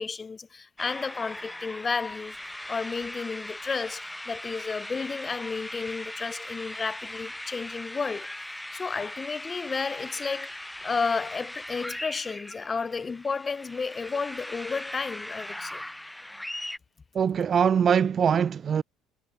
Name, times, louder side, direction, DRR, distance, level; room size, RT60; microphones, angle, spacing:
voice 1, 0.0-2.4 2.7-8.3 8.7-15.8, left 5 dB, 20° left, 5.6 m, -32 dB
sound 1, 0.8-16.8, left 1 dB, 5° left, 2.9 m, -39 dB
voice 2, 17.1-18.8, right 7 dB, 35° right, 2.0 m, -22 dB
cardioid pair, 135°, 0 cm